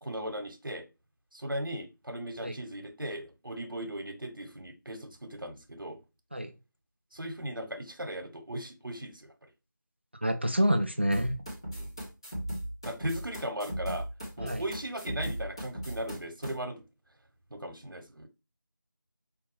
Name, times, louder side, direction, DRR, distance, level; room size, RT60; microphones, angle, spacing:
voice 1, 0.0-0.9 1.3-6.0 7.1-9.3 11.7-11.9 12.8-14.0 14.4-16.8 17.5-18.3, right 1 dB, 80° right, 0.9 m, -37 dB
voice 2, 10.2-11.4 14.4-14.6, equal, 30° right, 0.4 m, -27 dB
sound 1, 11.1-16.5, equal, 15° left, 0.7 m, -37 dB
5.1 x 2.4 x 3.1 m
figure-of-eight pair, 170°, 11 cm